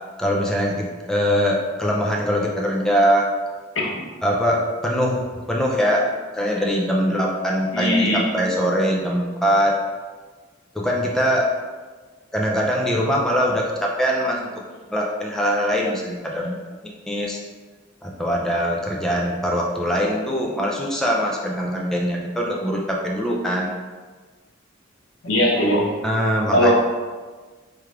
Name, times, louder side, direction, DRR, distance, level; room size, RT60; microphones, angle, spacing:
voice 1, 0.2-3.2 4.2-6.0 6.3-9.7 10.7-11.5 12.3-14.4 14.9-16.5 17.1-17.4 18.0-23.7 26.0-26.7, equal, 5° left, -2 dB, 0.4 m, -22 dB
voice 2, 7.7-8.2 25.2-25.9 26.5-26.7, equal, 80° left, -3 dB, 0.9 m, -19 dB
3.2 x 2.4 x 4.4 m, 1.4 s
head